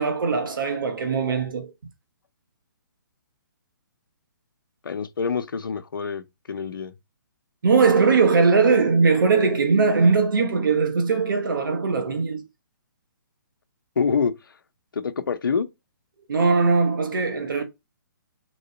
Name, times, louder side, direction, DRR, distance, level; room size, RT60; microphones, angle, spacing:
voice 1, 0.0-1.7 7.6-12.4 16.3-17.6, right 4 dB, 75° right, 1.1 m, -20 dB
voice 2, 4.8-6.9 14.0-14.3 14.9-15.7, left 5 dB, 80° left, 0.8 m, -26 dB
3.8 x 3.2 x 4.2 m
hypercardioid pair, 150°, 11 cm